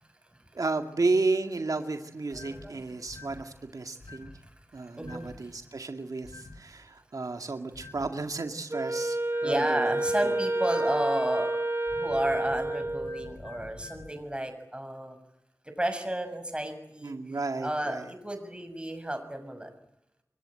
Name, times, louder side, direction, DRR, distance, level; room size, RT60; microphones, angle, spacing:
voice 1, 0.5-4.3 4.7-10.3 17.0-18.1, right 3 dB, 85° right, 6 dB, 2.1 m, -32 dB
sound 1, 2.3-2.7 3.1-3.4 4.0-4.4 5.0-5.4 6.2-6.6 7.7-8.1 9.3-14.1, left 3 dB, 70° left, 6.6 m, -46 dB
voice 2, 2.3-3.0 4.0-4.5 4.8-5.5 9.4-11.5 11.9-15.2 15.8-19.7, right 1 dB, 15° right, 7 dB, 6.8 m, -32 dB
Wind instrument woodwind instrument, 8.7-13.4, right 2 dB, 45° right, 1.2 m, -30 dB
28.5 x 22.5 x 8.9 m, 0.84 s
wide cardioid pair, 60°, 6 cm